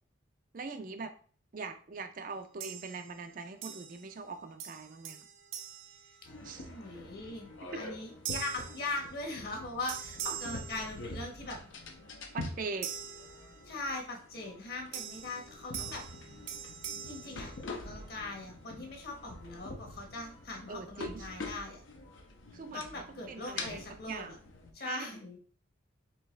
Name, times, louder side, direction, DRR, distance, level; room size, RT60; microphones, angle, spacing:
voice 1, 0.5-1.1 1.5-5.3 6.4-6.7 7.7-7.9 12.3-12.9 20.7-21.3 22.5-24.4 24.8-25.1, right 4 dB, 45° right, 8 dB, 0.4 m, -42 dB
sound 1, 2.6-3.3 3.6-4.3 4.6-6.8 7.3-7.5 8.2-9.6 9.9-11.5 12.8-14.0 14.9-18.2, right 9 dB, 80° right, 0.6 m, -44 dB
sound 2, 6.2-24.7, left 2 dB, 80° left, 0.8 m, -46 dB
voice 2, 6.7-7.5 7.7-11.6 13.6-16.0 17.0-21.8 22.7-24.4 24.7-25.4, left 2 dB, 50° left, 1 dB, 1.2 m, -40 dB
4.5 x 3.3 x 3.2 m, 0.43 s
head